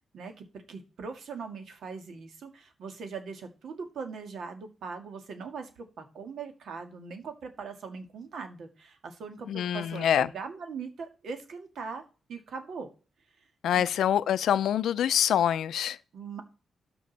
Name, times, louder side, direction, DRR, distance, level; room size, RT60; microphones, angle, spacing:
voice 1, 0.1-12.0 12.3-12.9 13.7-13.8 16.1-16.4, right 5 dB, 70° right, 2.1 m, -40 dB
voice 2, 9.5-10.3 13.6-16.0, left 10 dB, 90° left, 0.5 m, -25 dB
13.0 x 5.4 x 4.2 m
cardioid pair, 120°, 0 cm